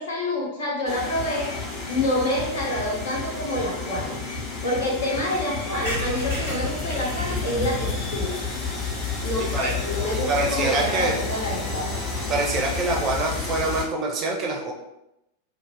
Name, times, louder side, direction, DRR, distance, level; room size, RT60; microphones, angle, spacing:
voice 1, 0.0-1.5 1.9-4.2 4.6-8.4 9.2-11.9, left 1 dB, 60° left, -3 dB, 0.8 m, -27 dB
sound 1, 0.9-13.8, left 4 dB, 35° left, 0.7 m, -30 dB
sound 2, 5.8-9.5 10.0-10.1 10.2-10.3 10.6-10.7 10.9-11.1, left 1 dB, 80° left, 1.2 m, -35 dB
voice 2, 10.1-11.2 12.3-14.7, right 3 dB, 30° right, 0 dB, 0.5 m, -25 dB
2.5 x 2.0 x 3.2 m, 0.87 s
figure-of-eight pair, 90°, 0 cm